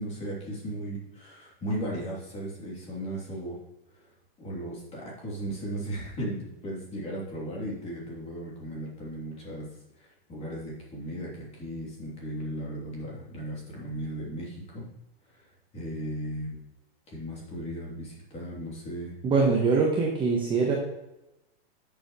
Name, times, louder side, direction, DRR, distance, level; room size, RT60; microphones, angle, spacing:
voice 1, 0.0-3.6 4.4-9.7 10.0-14.8 15.3-15.5 15.7-16.6 17.1-19.1, right 1 dB, 20° left, -4 dB, 3.2 m, -36 dB
voice 2, 19.2-20.7, right 4 dB, 15° right, -1 dB, 1.1 m, -23 dB
10.5 x 7.1 x 3.1 m, 0.90 s
supercardioid pair, 155°, 31 cm